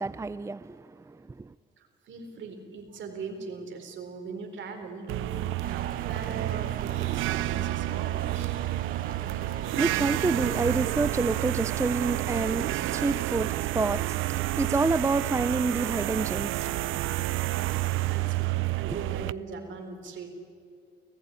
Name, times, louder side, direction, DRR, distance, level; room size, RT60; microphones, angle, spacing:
voice 1, 0.0-1.5 9.1-18.4 18.9-19.0, right 3 dB, 15° right, 0.5 m, -29 dB
voice 2, 1.8-8.5 18.0-20.3, right 4 dB, 70° right, 4.1 m, -40 dB
sound 1, 5.1-19.3, right 16 dB, 85° right, 0.5 m, -30 dB
Engine, 5.6-13.2, right 7 dB, 45° right, 0.8 m, -40 dB
29.0 x 15.5 x 9.9 m
cardioid pair, 90°, 20 cm